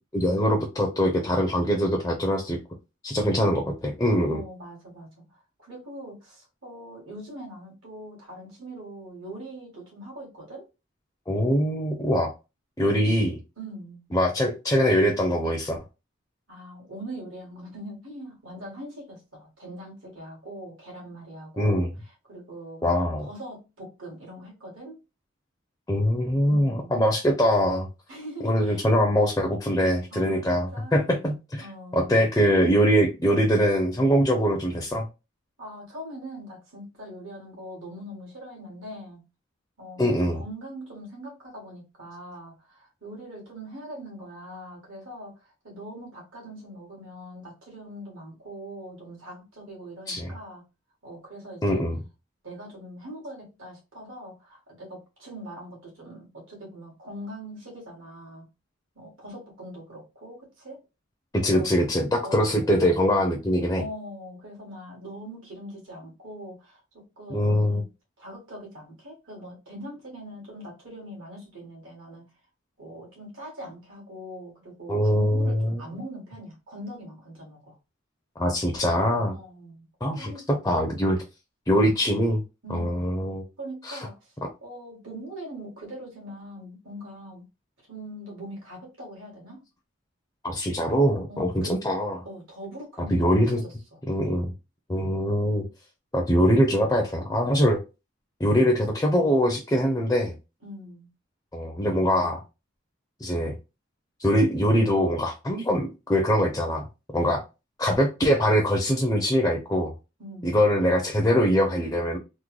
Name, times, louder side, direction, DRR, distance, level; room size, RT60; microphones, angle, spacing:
voice 1, 0.1-2.6 3.0-4.4 11.3-12.3 12.8-13.4 14.1-15.8 21.6-21.9 22.8-23.3 25.9-27.9 28.4-31.7 31.9-35.1 40.0-40.4 50.1-50.3 51.6-52.0 61.3-63.8 67.3-67.8 74.9-75.8 78.4-79.3 80.0-81.2 81.7-82.4 82.7-83.4 83.8-84.1 90.4-92.2 93.1-93.6 94.1-94.5 94.9-95.6 96.1-97.8 98.4-100.3 101.5-102.4 103.2-103.5 104.2-106.8 107.1-107.4 107.8-109.9 110.4-112.2, equal, 15° left, 0.4 m, -23 dB
voice 2, 4.2-10.6 12.8-14.0 16.5-22.9 23.2-25.0 26.4-27.0 28.1-28.9 30.1-30.9 31.6-32.3 35.6-39.2 39.8-50.6 51.0-51.9 52.4-58.5 58.9-60.8 61.4-61.7 62.2-62.7 63.8-67.9 68.2-72.3 72.8-77.8 79.3-79.9 80.1-81.0 82.6-83.1 83.6-84.3 84.6-87.4 87.9-89.6 91.3-91.8 92.2-94.0 100.6-101.1 107.2-107.4 110.2-110.6, equal, 75° right, 1.8 m, -42 dB
3.6 x 2.0 x 3.0 m
head